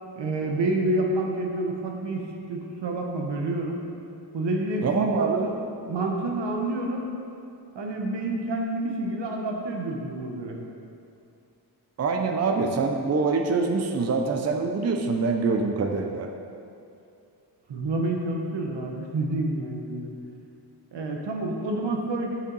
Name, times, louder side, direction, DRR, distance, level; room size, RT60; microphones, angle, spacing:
voice 1, 0.1-3.8 4.3-7.1 7.7-10.6 17.7-20.1 20.9-22.3, right 2 dB, 85° right, 1 dB, 1.1 m, -28 dB
voice 2, 4.8-5.4 12.0-16.3, right 4 dB, 40° right, 4 dB, 0.5 m, -25 dB
7.3 x 7.1 x 4.0 m, 2.6 s
wide cardioid pair, 120°, 41 cm